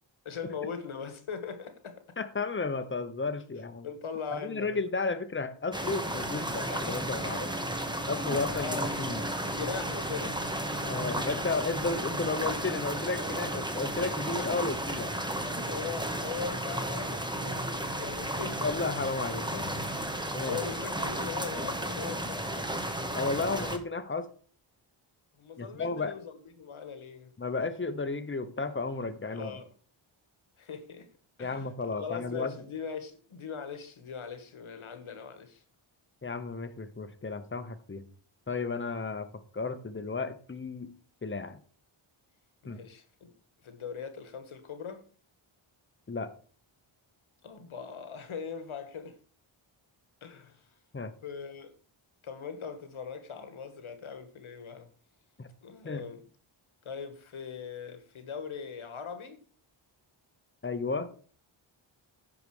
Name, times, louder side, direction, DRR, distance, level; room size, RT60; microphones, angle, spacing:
voice 1, 0.2-2.2 3.8-4.8 8.5-8.9 9.4-10.4 15.7-18.7 20.1-22.7 25.4-27.3 29.3-29.7 30.6-31.1 31.4-35.6 42.6-43.3 43.6-45.0 47.4-49.2 50.2-50.7 51.2-51.7 52.2-54.9 55.6-56.2 56.8-59.4, left 6 dB, 70° left, 1.7 m, -40 dB
voice 2, 2.2-3.9 4.3-7.5 8.1-9.2 10.8-15.1 18.6-19.8 20.3-20.6 23.1-24.3 25.6-26.1 27.4-29.5 31.4-32.5 36.2-38.0 38.5-41.6 42.7-42.8 46.1-46.3 50.9-51.1 55.4-55.5 55.8-56.0 60.6-61.1, left 3 dB, 25° left, 1.0 m, -33 dB
sound 1, 5.7-23.8, right 1 dB, 10° right, 1.1 m, -33 dB
10.5 x 5.0 x 4.9 m
wide cardioid pair, 95°, 50 cm